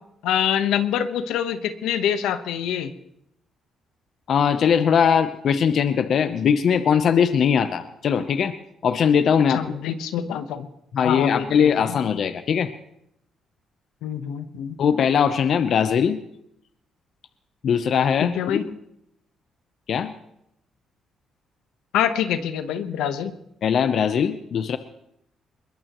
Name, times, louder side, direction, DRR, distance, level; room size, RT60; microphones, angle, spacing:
voice 1, 0.2-2.9 9.5-10.7 11.0-12.0 14.0-14.8 18.2-18.6 21.9-23.3, left 9 dB, 90° left, 10 dB, 1.1 m, -25 dB
voice 2, 4.3-8.5 8.8-9.6 10.9-12.7 14.8-16.2 17.6-18.7 19.9-20.1 23.6-24.8, left 7 dB, 60° left, 10 dB, 0.8 m, -20 dB
21.5 x 21.0 x 3.1 m, 0.78 s
cardioid pair, 90°, 0 cm